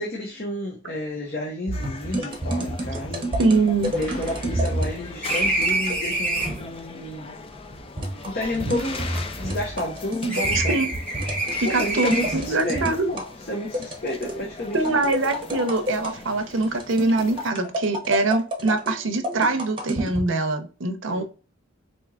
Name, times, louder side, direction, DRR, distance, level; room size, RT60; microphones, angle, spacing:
voice 1, 0.0-3.3 3.9-7.4 8.3-10.8 11.6-13.2 13.5-15.0 21.1-21.2, left 1 dB, 45° left, 0.8 m, -31 dB
sound 1, 1.7-17.5, left 4 dB, 25° left, 0.3 m, -40 dB
sound 2, 1.7-5.0 5.6-6.1 8.0-13.3 13.7-14.4 14.8-16.1 16.6-20.3, right 1 dB, 25° right, 0.8 m, -29 dB
sound 3, 2.6-2.7 2.9-3.0 3.4-6.7 7.5-10.0 10.3-12.6, right 2 dB, 5° left, 1.2 m, -28 dB
voice 2, 3.4-3.9 10.5-10.9 11.6-13.1 14.7-21.2, right 3 dB, 65° right, 0.7 m, -23 dB
4.4 x 2.8 x 2.3 m
head